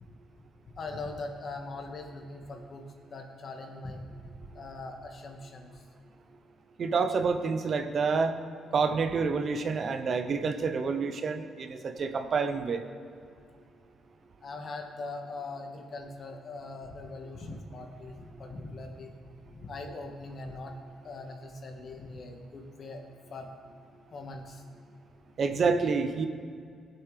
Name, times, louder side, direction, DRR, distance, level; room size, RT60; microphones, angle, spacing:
voice 1, 0.7-4.0 4.5-5.7 9.1-9.2 14.4-19.1 19.5-20.7 21.0-23.0 23.3-23.5 24.1-24.6, left 3 dB, 50° left, 3 dB, 1.5 m, -41 dB
voice 2, 6.8-8.4 8.7-12.8 25.4-26.3, right 5 dB, 50° right, 8 dB, 0.8 m, -28 dB
17.0 x 7.8 x 3.3 m, 2.3 s
cardioid pair, 90°, 0 cm